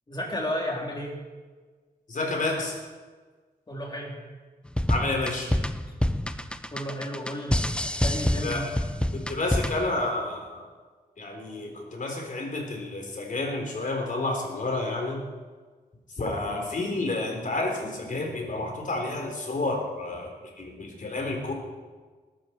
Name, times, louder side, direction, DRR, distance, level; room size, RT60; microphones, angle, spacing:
voice 1, 0.1-1.2 3.7-4.2 6.7-8.8, equal, 25° left, -1 dB, 3.7 m, -33 dB
voice 2, 2.1-2.8 4.9-5.5 8.4-8.6 9.1-10.6 11.2-15.2 16.2-20.3 20.6-21.5, left 2 dB, 50° left, 1 dB, 3.9 m, -30 dB
sound 1, 4.7-9.9, left 1 dB, 5° left, 0.7 m, -27 dB
20.0 x 13.0 x 4.6 m, 1.4 s
wide cardioid pair, 110°, 17 cm